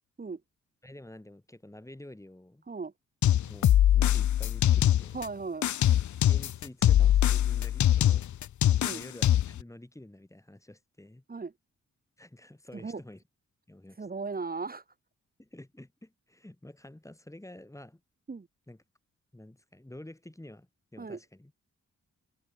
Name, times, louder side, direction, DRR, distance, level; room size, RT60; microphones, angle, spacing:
voice 1, 0.8-2.6 3.4-5.2 6.1-8.3 8.9-11.2 12.2-13.2 13.7-14.1 15.4-18.0 18.7-18.8 19.3-21.5, left 1 dB, 10° left, 6.7 m, -49 dB
sound 1, 3.2-5.3 5.6-9.6, left 11 dB, 70° left, 0.8 m, -23 dB
voice 2, 5.1-5.7 8.8-9.0 11.3-11.5 12.7-13.0 14.0-14.8 18.3-18.5 21.0-21.2, right 4 dB, 30° right, 1.9 m, -36 dB
open air
cardioid pair, 85°, 30 cm